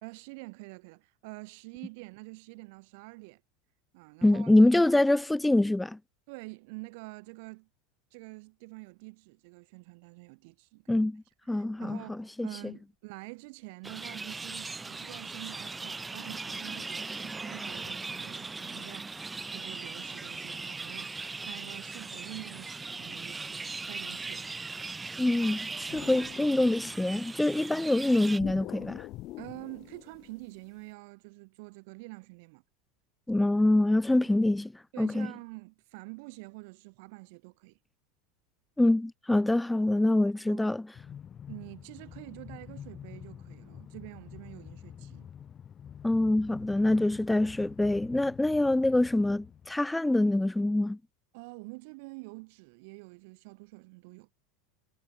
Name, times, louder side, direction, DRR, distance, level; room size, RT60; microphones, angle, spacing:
voice 1, 0.0-3.4 3.9-4.5 6.3-7.7 8.1-11.0 11.5-23.6 23.9-24.5 29.4-32.6 34.4-34.5 34.9-37.8 40.5-40.7 41.5-45.3 51.3-54.3, right 29 dB, 60° right, 2.1 m, -47 dB
voice 2, 4.2-6.0 10.9-11.2 11.5-12.0 12.4-12.7 25.2-29.1 33.3-34.7 35.0-35.3 38.8-40.8 46.0-51.0, left 1 dB, 5° left, 0.6 m, -25 dB
sound 1, 13.8-28.4, right 3 dB, 15° right, 3.8 m, -39 dB
sound 2, 25.9-27.4 28.4-30.8, left 17 dB, 45° left, 3.5 m, -44 dB
Train, 40.9-49.8, left 8 dB, 30° left, 1.5 m, -47 dB
figure-of-eight pair, 85°, 0 cm